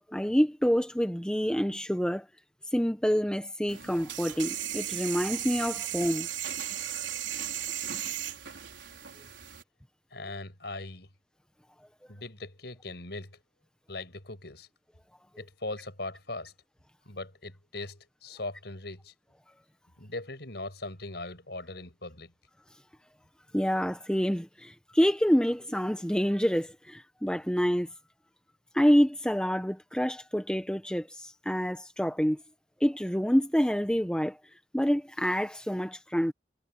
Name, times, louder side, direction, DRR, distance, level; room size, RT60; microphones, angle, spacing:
voice 1, 0.1-2.3 2.7-6.3 23.5-27.9 28.7-32.4 32.8-34.4 34.7-36.3, equal, 5° left, 1.1 m, -27 dB
sound 1, 3.7-9.6, right 11 dB, 75° right, 4.8 m, -36 dB
voice 2, 10.1-11.1 12.1-13.4 13.9-14.7 15.4-16.5 17.1-19.1 20.0-22.3, left 2 dB, 60° left, 6.1 m, -40 dB
head